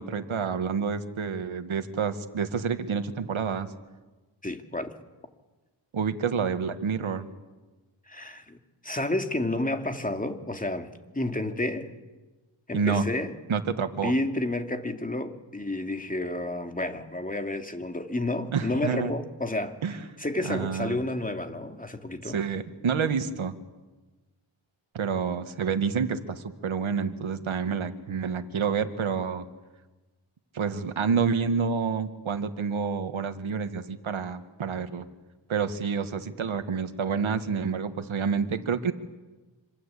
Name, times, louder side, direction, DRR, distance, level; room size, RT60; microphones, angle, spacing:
voice 1, 0.0-3.7 5.9-7.3 12.7-13.0 13.5-14.1 18.5-19.1 19.8-20.0 20.4-21.0 22.3-23.5 24.9-29.4 30.5-35.1 35.5-38.9, right 6 dB, 70° right, 1.9 m, -28 dB
voice 2, 4.4-4.9 8.1-8.6 8.8-11.9 12.7-13.3 13.9-19.8 20.2-22.4, left 2 dB, 15° left, 2.6 m, -30 dB
26.5 x 26.5 x 8.5 m
wide cardioid pair, 85°, 49 cm